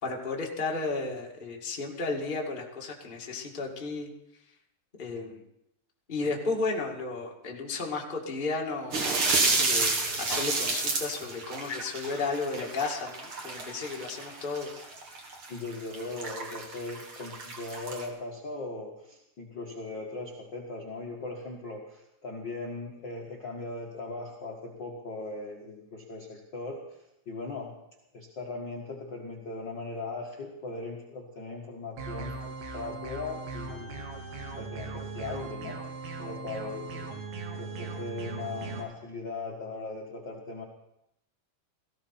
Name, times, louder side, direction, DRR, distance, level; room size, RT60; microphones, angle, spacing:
voice 1, 0.0-4.1 5.0-5.4 6.1-9.1 9.4-14.7, left 3 dB, 25° left, -2 dB, 1.2 m, -33 dB
sound 1, 8.9-18.1, right 3 dB, 45° right, 2.1 m, -30 dB
voice 2, 15.5-26.8 27.2-27.7 28.1-32.3 32.7-34.0 34.6-35.8 36.2-37.1 37.3-40.6, left 3 dB, 55° left, 0 dB, 1.2 m, -39 dB
sound 2, 32.0-38.8, right 3 dB, 75° right, 3.9 m, -39 dB
18.0 x 16.0 x 4.3 m, 0.83 s
omnidirectional pair, 4.8 m